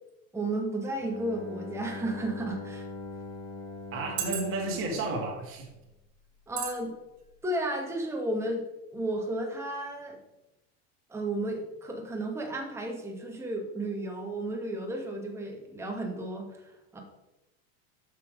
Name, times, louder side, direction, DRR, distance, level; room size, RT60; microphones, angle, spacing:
voice 1, 0.3-2.9 6.5-6.9 7.4-8.6 8.9-10.2 11.1-17.0, right 1 dB, 5° right, 0 dB, 1.1 m, -33 dB
Bowed string instrument, 1.0-5.8, left 2 dB, 10° left, 0.8 m, -42 dB
voice 2, 3.9-5.7, right 2 dB, 30° right, 0 dB, 1.7 m, -32 dB
sound 1, 4.2-4.8 5.5-5.7 6.6-6.8 7.2-7.3, right 8 dB, 50° right, 1.8 m, -35 dB
6.3 x 5.6 x 5.0 m, 0.95 s
supercardioid pair, 155°, 44 cm